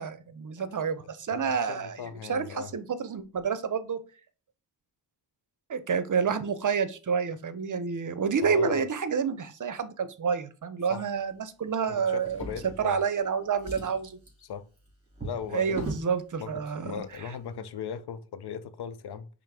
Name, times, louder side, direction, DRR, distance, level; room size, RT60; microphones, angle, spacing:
voice 1, 0.0-4.0 5.7-12.5 12.8-14.2 15.5-17.3, right 6 dB, 50° right, 0.6 m, -29 dB
voice 2, 1.3-2.7 8.4-8.9 10.9-11.1 11.9-13.0 14.4-14.6 15.2-15.9 16.4-16.5 16.8-19.3, left 7 dB, 70° left, 0.6 m, -38 dB
Drawer open or close, 12.2-13.2 13.5-16.1 17.0-17.2 17.5-17.6, right 2 dB, 15° right, 2.3 m, -39 dB
5.6 x 2.0 x 4.8 m
cardioid pair, 65°, 41 cm